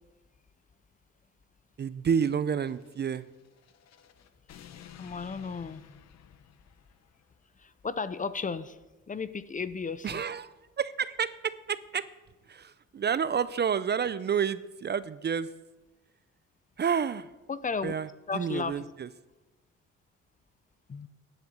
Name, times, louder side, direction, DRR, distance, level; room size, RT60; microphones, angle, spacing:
voice 1, 1.8-3.3 10.0-12.0 12.5-15.5 16.8-17.3 17.8-18.1 18.3-19.1, right 7 dB, 35° right, 15 dB, 0.5 m, -30 dB
sound 1, 2.5-7.3, left 9 dB, 60° left, 0.8 m, -53 dB
voice 2, 4.5-5.8 7.6-8.8 9.1-10.2 17.5-17.9 18.3-18.9 20.9-21.1, left 5 dB, 25° left, 15 dB, 0.6 m, -35 dB
10.5 x 7.7 x 6.7 m, 1.1 s
cardioid pair, 90°, 30 cm